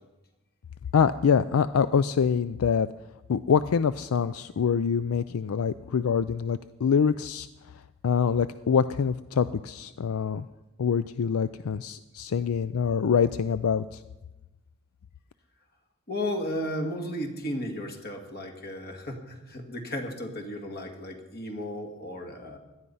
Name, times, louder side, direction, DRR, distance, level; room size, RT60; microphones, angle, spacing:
voice 1, 0.9-2.9 3.3-7.5 8.0-10.5 10.8-14.0, left 6 dB, 80° left, 14 dB, 0.4 m, -25 dB
voice 2, 16.1-22.6, left 1 dB, 50° left, 4 dB, 2.0 m, -34 dB
17.5 x 11.5 x 5.5 m, 1.1 s
head